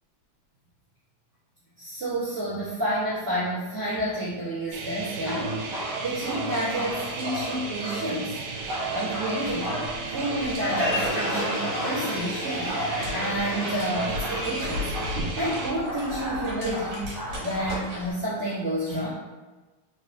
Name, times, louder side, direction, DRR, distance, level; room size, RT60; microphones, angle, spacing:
voice 1, 1.8-8.4 8.9-14.9 15.3-17.1 17.4-19.1, right 1 dB, 40° right, -13 dB, 1.9 m, -30 dB
sound 1, 4.7-15.7, right 4 dB, 80° right, 1.6 m, -35 dB
Dog, 5.1-8.1 8.4-18.1, equal, 60° right, 1.5 m, -34 dB
Crowd, 10.4-15.9, left 1 dB, 55° left, 1.7 m, -31 dB
4.2 x 3.0 x 2.7 m, 1.2 s
omnidirectional pair, 3.4 m